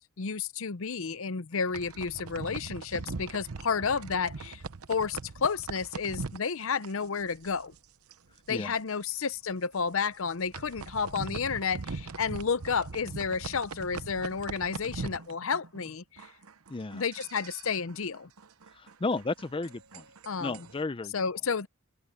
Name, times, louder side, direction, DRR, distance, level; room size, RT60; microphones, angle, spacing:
voice 1, 0.0-4.6 4.9-7.7 8.5-16.3 16.9-18.3 20.3-20.7 21.1-21.7, left 5 dB, 65° left, 0.7 m, -31 dB
sound 1, 1.5-7.8 8.1-8.4 8.7-8.8 9.3-9.5 10.1-15.9 16.2-20.8, right 4 dB, 85° right, 0.9 m, -41 dB
voice 2, 16.7-17.0 18.8-20.0 20.4-21.1, left 3 dB, 25° left, 0.5 m, -33 dB
open air
head